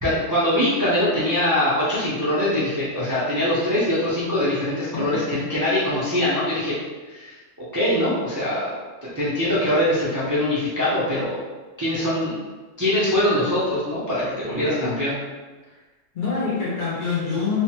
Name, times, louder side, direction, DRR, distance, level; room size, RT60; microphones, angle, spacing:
voice 1, 0.0-6.8 7.1-11.5 11.8-12.4 12.8-15.2, left 1 dB, 25° right, -10 dB, 0.4 m, -23 dB
voice 2, 4.9-5.4 14.5-15.0 16.1-17.6, left 5 dB, 55° left, -7 dB, 0.6 m, -26 dB
3.1 x 2.1 x 2.8 m, 1.3 s
omnidirectional pair, 1.3 m